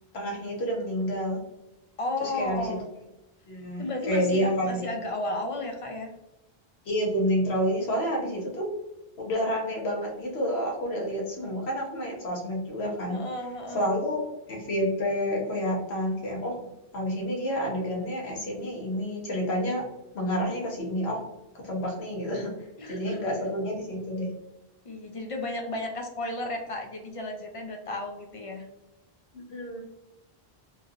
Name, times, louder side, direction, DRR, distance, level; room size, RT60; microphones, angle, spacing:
voice 1, 0.1-1.4 2.2-2.8 3.5-4.9 6.8-8.7 9.2-13.2 13.7-14.2 14.5-16.7 16.9-19.8 20.1-21.2 21.5-22.5 22.9-24.3 29.3-29.8, equal, 85° left, -2 dB, 1.3 m, -29 dB
voice 2, 2.0-2.9 3.8-6.1 13.1-13.9 22.8-23.2 24.8-28.7, left 2 dB, 45° left, 3 dB, 0.5 m, -33 dB
3.1 x 2.7 x 2.4 m, 0.91 s
omnidirectional pair, 1.0 m